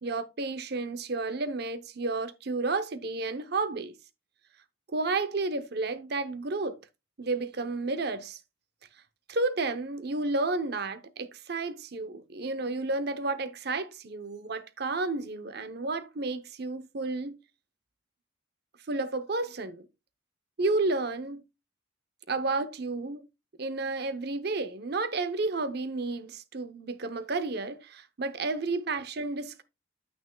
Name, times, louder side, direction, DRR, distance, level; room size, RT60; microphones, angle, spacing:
voice 1, 0.0-3.9 4.9-6.8 7.2-8.4 9.3-17.4 18.9-19.9 20.6-21.4 22.3-23.3 23.6-29.6, right 3 dB, 55° right, 0.8 m, -31 dB
9.3 x 8.6 x 2.3 m
head